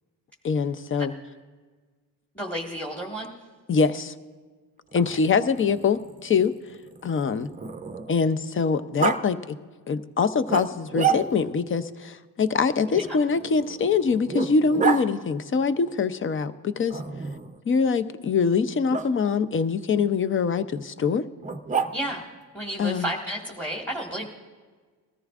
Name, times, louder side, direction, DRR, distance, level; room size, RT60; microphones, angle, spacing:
voice 1, 0.4-1.1 3.7-4.1 4.9-6.5 7.0-7.5 8.1-9.6 9.9-17.0 17.7-21.3 22.8-23.1, left 5 dB, 30° left, 13 dB, 0.6 m, -24 dB
voice 2, 2.3-3.3 12.9-13.2 21.9-22.2 22.5-24.3, right 1 dB, 5° left, -2 dB, 1.6 m, -32 dB
Growling, 4.9-8.3 9.0-9.2 10.5-11.6 12.9-15.0 16.9-17.6 18.9-19.1 21.4-22.3, right 6 dB, 20° right, 0.6 m, -30 dB
20.5 x 14.0 x 2.4 m, 1.4 s
cardioid pair, 100°, 42 cm